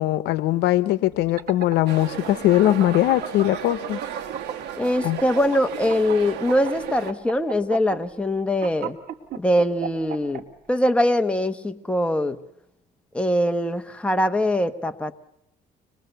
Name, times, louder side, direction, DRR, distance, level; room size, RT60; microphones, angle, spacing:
voice 1, 0.0-4.0 5.0-5.2, left 14 dB, 85° left, 15 dB, 0.9 m, -21 dB
sound 1, 1.1-4.7 5.0-10.4, right 8 dB, 65° right, 2.2 m, -33 dB
sound 2, 1.9-7.1, right 9 dB, 85° right, 1.6 m, -35 dB
voice 2, 4.8-9.0 9.4-10.4 10.7-12.4 13.1-15.1, left 1 dB, 5° left, 7 dB, 1.2 m, -22 dB
25.5 x 21.0 x 6.8 m, 0.79 s
cardioid pair, 110°, 17 cm